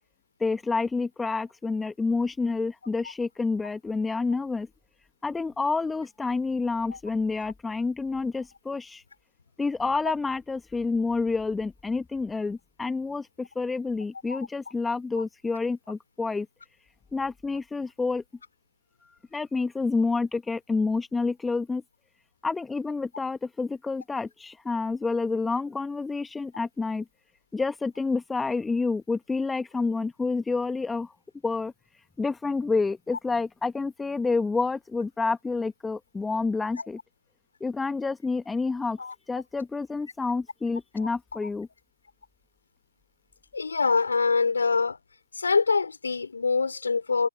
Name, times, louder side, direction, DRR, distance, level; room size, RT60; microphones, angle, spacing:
voice 1, 0.4-4.7 5.2-9.0 9.6-16.5 17.1-18.2 19.3-21.8 22.4-27.0 27.5-31.1 31.4-31.7 32.2-37.0 37.6-39.0 39.3-41.7, left 4 dB, 5° left, 1.7 m, -28 dB
voice 2, 43.5-45.0 45.3-47.3, left 4 dB, 70° left, 3.1 m, -25 dB
figure-of-eight pair, 125°, 0 cm